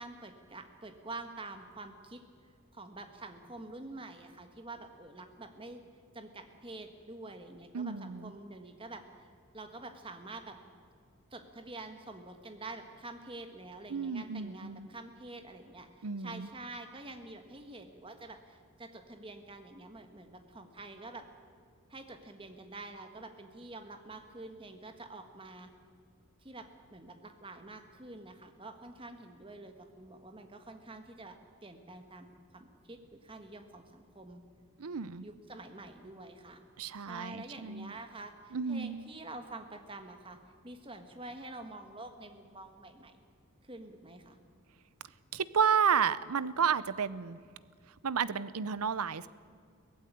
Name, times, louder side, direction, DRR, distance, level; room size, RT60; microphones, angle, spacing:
voice 1, 0.0-2.2 2.7-5.8 6.1-9.3 9.5-10.6 11.3-21.2 21.9-25.7 26.4-34.4 35.2-36.6 37.1-40.4 40.6-43.1 43.6-44.4, right 2 dB, 25° right, 7 dB, 1.5 m, -47 dB
voice 2, 7.7-8.3 13.9-14.9 16.0-16.5 34.8-35.3 36.8-37.9 38.5-39.0 45.3-47.4 48.0-49.3, right 6 dB, 85° right, 17 dB, 0.7 m, -31 dB
17.5 x 15.5 x 9.8 m, 2.2 s
head